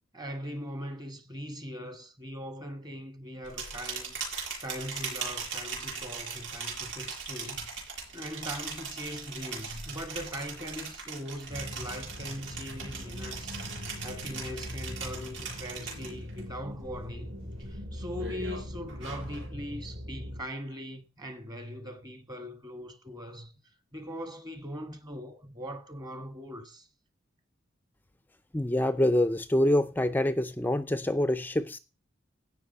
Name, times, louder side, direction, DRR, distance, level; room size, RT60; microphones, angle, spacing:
voice 1, 0.1-4.2 4.6-7.7 8.1-23.5 23.9-26.9, equal, 20° right, 1.7 m, -40 dB
sound 1, 3.4-16.4 16.8-17.2 17.6-19.5, right 5 dB, 65° right, 8.0 m, -39 dB
sound 2, 11.5-20.4, left 1 dB, 50° right, 5.4 m, -41 dB
voice 2, 28.5-31.8, left 1 dB, 10° left, 0.5 m, -26 dB
17.0 x 6.0 x 4.2 m
head